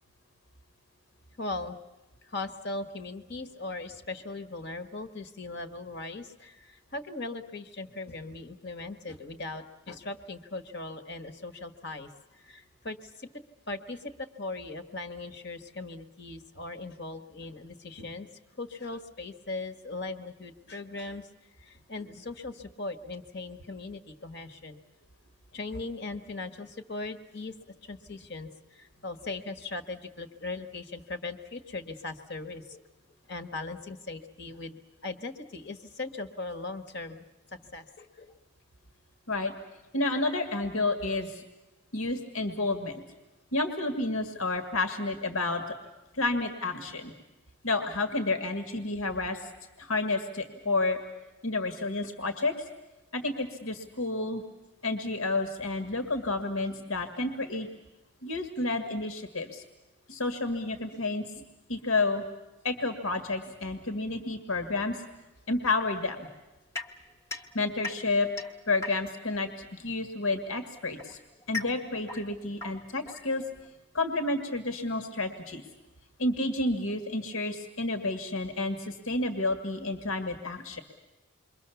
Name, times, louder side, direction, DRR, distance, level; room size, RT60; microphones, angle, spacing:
voice 1, 1.4-1.8 2.2-13.3 13.7-18.3 18.6-21.3 21.6-24.8 25.5-27.6 27.8-32.8 33.3-37.2 37.7-38.3, left 2 dB, 50° left, 8 dB, 1.5 m, -39 dB
voice 2, 39.9-41.4 41.9-43.0 43.5-45.6 46.1-47.1 47.6-49.4 49.8-51.0 51.4-52.5 53.1-54.4 54.8-57.7 58.2-59.6 60.1-61.4 61.7-62.2 62.6-65.0 65.5-66.3 67.5-68.3 68.7-71.2 71.5-73.4 73.9-75.6 76.2-80.8, left 2 dB, 75° left, 6 dB, 1.9 m, -30 dB
sound 1, 66.7-69.3 70.4-73.7, left 4 dB, 15° left, 1.2 m, -40 dB
28.0 x 23.0 x 7.1 m, 1.1 s
head